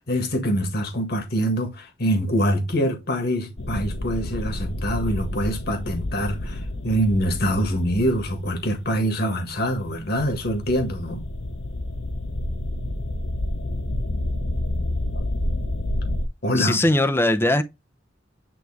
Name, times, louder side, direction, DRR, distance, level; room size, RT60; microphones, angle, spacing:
voice 1, 0.1-11.2 16.4-16.8, equal, 55° left, 1.8 m, -24 dB
sound 1, 3.6-9.0 9.5-16.3, left 1 dB, 80° left, 1.1 m, -29 dB
voice 2, 16.6-17.6, left 1 dB, 15° left, 0.7 m, -20 dB
9.3 x 3.2 x 3.4 m
head